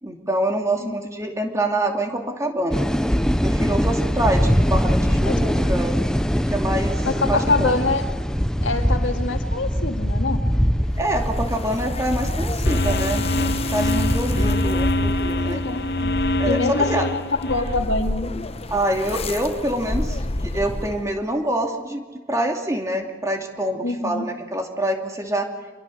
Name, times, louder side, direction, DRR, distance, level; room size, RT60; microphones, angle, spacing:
voice 1, 0.0-2.9 3.4-5.9 6.5-7.8 11.0-15.6 16.4-17.1 18.7-22.0 22.3-25.5, right 1 dB, 15° right, 3 dB, 2.5 m, -26 dB
sound 1, 2.7-16.6, equal, 5° left, 0.6 m, -23 dB
voice 2, 7.0-8.0 8.6-10.4 15.5-16.2 16.5-18.3 23.8-24.3, left 3 dB, 75° left, 5 dB, 2.2 m, -25 dB
sound 2, 10.9-21.3, left 2 dB, 30° left, 0.9 m, -32 dB
sound 3, 12.7-17.8, left 2 dB, 60° left, 1.2 m, -25 dB
26.5 x 22.5 x 6.5 m, 1.4 s
head